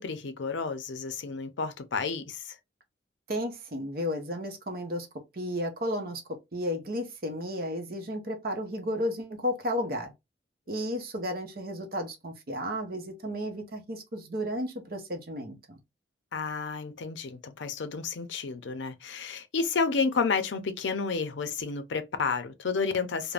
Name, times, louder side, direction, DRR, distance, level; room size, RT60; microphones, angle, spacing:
voice 1, 0.0-2.6 16.3-23.3, left 5 dB, 80° left, 0.5 m, -31 dB
voice 2, 3.3-5.1 5.3-6.2 6.5-10.1 10.7-15.8, equal, 50° right, 0.7 m, -33 dB
2.4 x 2.1 x 3.2 m
head